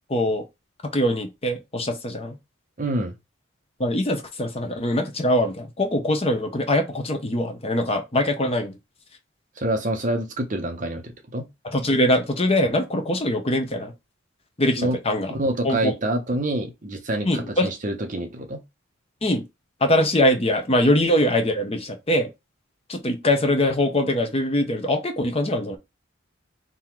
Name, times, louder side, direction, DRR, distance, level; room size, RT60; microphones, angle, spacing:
voice 1, 0.1-0.4 0.9-2.4 3.8-8.8 11.6-13.9 14.6-15.4 15.6-15.9 17.2-17.7 19.2-19.4 19.8-22.3 22.9-25.8, left 1 dB, 30° left, 0.8 m, -22 dB
voice 2, 2.8-3.1 9.6-11.5 14.8-15.0 15.3-18.6, right 1 dB, 40° right, 0.9 m, -27 dB
3.8 x 2.9 x 4.5 m
head